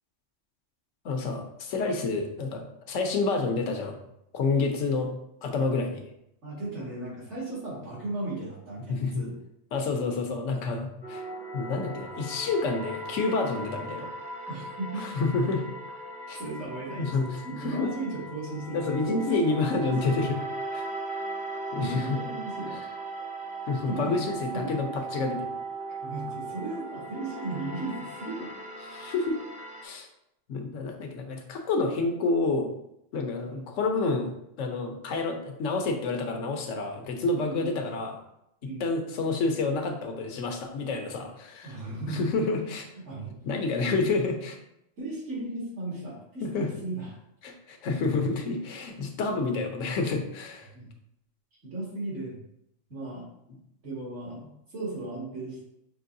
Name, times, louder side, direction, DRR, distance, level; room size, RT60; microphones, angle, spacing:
voice 1, 1.0-4.0 4.3-5.1 5.4-6.0 8.9-9.2 9.7-11.2 11.5-14.1 15.0-15.6 16.3-16.4 17.0-17.9 18.7-20.4 20.7-20.8 21.7-22.2 22.7-22.8 23.7-25.5 28.8-29.4 29.8-30.1 30.5-32.7 33.1-34.3 34.6-38.2 38.6-41.8 42.1-42.9 43.4-44.6 46.4-46.7 47.4-50.7, left 3 dB, 85° left, 4 dB, 1.1 m, -29 dB
voice 2, 6.4-9.3 14.5-15.0 16.4-20.2 21.7-22.8 23.9-24.7 26.0-28.5 33.4-33.7 37.3-37.7 38.6-38.9 41.6-42.2 43.1-43.3 43.8-44.0 45.0-47.1 50.7-50.9 51.6-52.4 52.9-53.3 53.8-55.6, right 2 dB, 65° right, -6 dB, 2.2 m, -36 dB
sound 1, 11.0-29.8, right 2 dB, 10° right, 0.5 m, -38 dB
6.0 x 3.1 x 2.6 m, 0.79 s
omnidirectional pair, 1.3 m